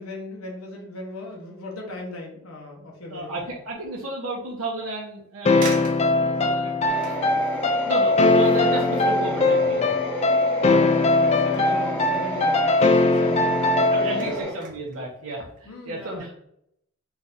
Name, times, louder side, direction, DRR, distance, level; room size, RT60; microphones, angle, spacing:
voice 1, 0.0-3.6 10.6-14.4 15.7-16.3, left 2 dB, 90° left, 0 dB, 1.1 m, -37 dB
voice 2, 3.1-5.9 6.2-7.4 7.8-9.9 13.8-16.3, right 2 dB, 85° right, -4 dB, 1.0 m, -33 dB
sound 1, 3.2-3.6 4.2-4.3 5.1-5.2 5.6-10.6 10.8-12.3 12.6-13.0 13.5-15.0 15.4-15.6, right 3 dB, 40° right, 0.9 m, -43 dB
sound 2, 5.5-14.3, left 2 dB, 30° left, 0.3 m, -20 dB
sound 3, 6.9-14.5, left 1 dB, 5° left, 1.0 m, -32 dB
4.6 x 2.8 x 3.7 m, 0.73 s
head